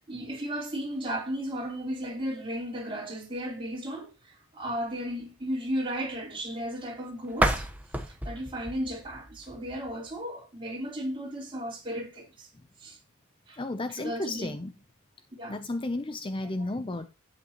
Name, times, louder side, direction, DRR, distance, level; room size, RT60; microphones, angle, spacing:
voice 1, 0.1-7.7 8.1-12.5 12.8-13.0 13.5-13.6 14.0-14.6 15.4-15.6, equal, 25° right, 3.7 m, -35 dB
sound 1, 7.3-10.2, right 1 dB, 5° right, 0.9 m, -31 dB
voice 2, 13.6-14.7 15.5-17.1, left 2 dB, 25° left, 0.5 m, -33 dB
10.5 x 8.8 x 2.9 m
head